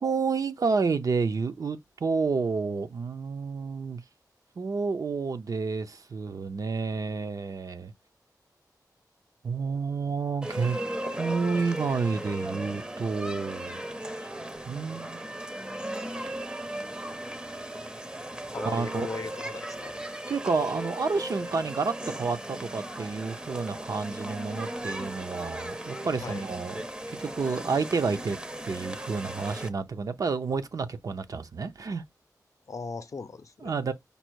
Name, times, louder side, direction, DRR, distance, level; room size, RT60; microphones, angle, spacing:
voice 1, 0.0-4.0 4.6-7.9 9.4-10.8 11.2-13.8 14.6-15.2 18.7-19.1 20.3-26.8 27.1-28.4 28.6-32.0 33.6-33.9, right 4 dB, 60° right, 0.5 m, -30 dB
sound 1, 10.4-29.7, right 1 dB, 15° right, 0.6 m, -37 dB
voice 2, 18.5-20.0 26.2-26.4 32.7-33.9, left 4 dB, 55° left, 0.5 m, -38 dB
5.3 x 2.0 x 4.5 m
wide cardioid pair, 120°, 7 cm